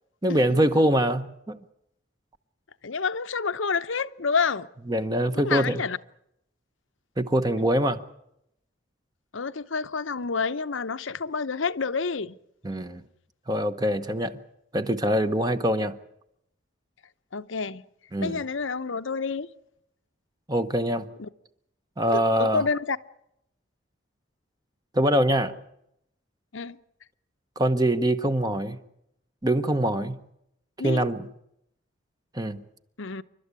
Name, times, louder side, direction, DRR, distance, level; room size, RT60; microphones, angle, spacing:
voice 1, 0.2-1.6 4.9-5.8 7.2-8.0 12.6-13.0 13.5-14.4 14.7-16.0 18.1-18.4 20.5-21.1 22.0-22.6 24.9-25.6 27.6-28.8 29.4-30.2 30.8-31.3 32.3-32.6, right 1 dB, 20° right, 0.9 m, -24 dB
voice 2, 2.8-4.7 5.3-6.0 9.3-12.4 17.3-17.8 18.2-19.5 21.2-21.3 22.4-23.0 26.5-26.8 30.8-31.0 33.0-33.2, left 5 dB, 75° left, 0.8 m, -28 dB
29.0 x 12.5 x 9.7 m
head